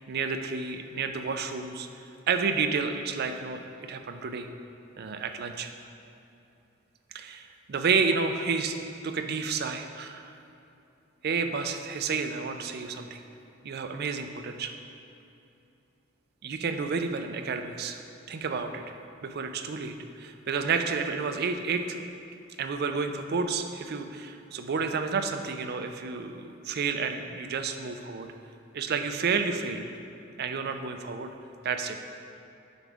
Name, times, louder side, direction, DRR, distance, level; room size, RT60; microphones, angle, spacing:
voice 1, 0.0-1.9 2.3-4.5 5.0-5.7 7.1-8.8 9.0-10.4 11.2-13.2 13.6-14.8 16.4-18.0 18.3-19.0 19.2-22.0 22.6-28.3 28.7-29.9 30.4-31.3 31.6-32.0, right 5 dB, 50° right, 7 dB, 0.4 m, -30 dB
7.9 x 6.1 x 3.4 m, 2.8 s
head